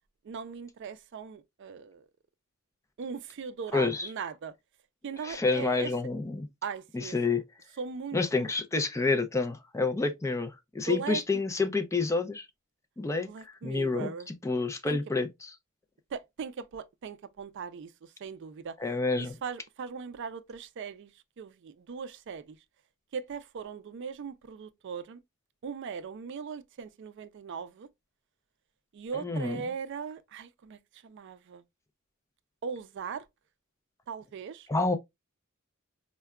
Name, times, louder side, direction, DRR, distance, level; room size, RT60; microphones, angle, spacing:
voice 1, 0.2-2.1 3.0-4.5 5.0-5.9 6.6-7.2 7.8-8.5 10.9-11.2 13.3-14.3 14.9-15.0 16.1-18.8 19.2-21.1 21.4-22.6 23.1-25.2 25.6-27.9 28.9-31.6 32.6-33.3 34.1-34.7, right 6 dB, 55° right, 0.4 m, -39 dB
voice 2, 3.7-4.1 5.2-6.5 6.9-7.4 8.1-12.5 13.0-14.1 14.4-15.5 18.8-19.3 29.1-29.6 34.7-35.0, left 3 dB, 15° left, 0.4 m, -29 dB
4.6 x 2.1 x 2.2 m
head